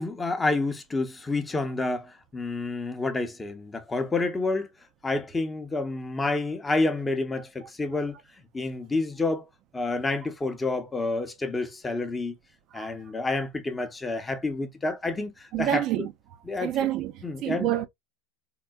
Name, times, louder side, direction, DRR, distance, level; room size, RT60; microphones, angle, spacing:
voice 1, 0.0-4.7 5.0-8.2 8.5-9.5 9.7-12.3 12.7-15.8 16.5-16.7 17.2-17.7, left 3 dB, 15° left, 0.6 m, -29 dB
voice 2, 15.5-16.1 16.5-17.9, right 12 dB, 45° right, 0.4 m, -28 dB
3.7 x 2.1 x 2.2 m
hypercardioid pair, 95°, 0 cm